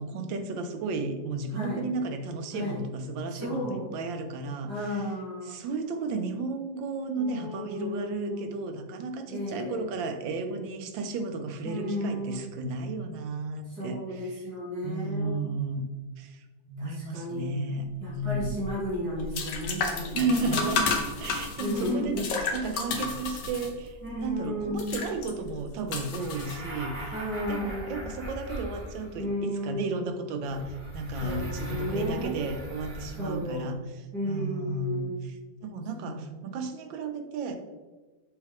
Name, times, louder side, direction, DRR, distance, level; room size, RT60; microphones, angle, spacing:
voice 1, 0.0-4.7 5.5-14.5 14.8-15.9 16.2-18.5 20.1-20.9 21.2-27.1 27.5-37.6, right 3 dB, 90° right, 6 dB, 1.4 m, -33 dB
voice 2, 1.5-1.9 2.5-2.8 3.3-3.9 4.7-5.6 7.2-8.6 9.3-9.9 11.6-12.5 13.7-15.4 16.8-17.5 18.0-20.7 21.6-22.3 24.0-25.0 27.1-28.1 29.1-30.2 31.2-32.4 33.2-33.6 34.1-35.2 35.9-36.2, left 1 dB, 60° right, -7 dB, 2.3 m, -33 dB
sound 1, 18.2-27.1, left 4 dB, 65° left, 1.4 m, -33 dB
Hollow Door Creak, 26.1-29.3 30.4-33.6, equal, 30° right, 2.2 m, -40 dB
6.3 x 4.6 x 3.5 m, 1.3 s
omnidirectional pair, 2.0 m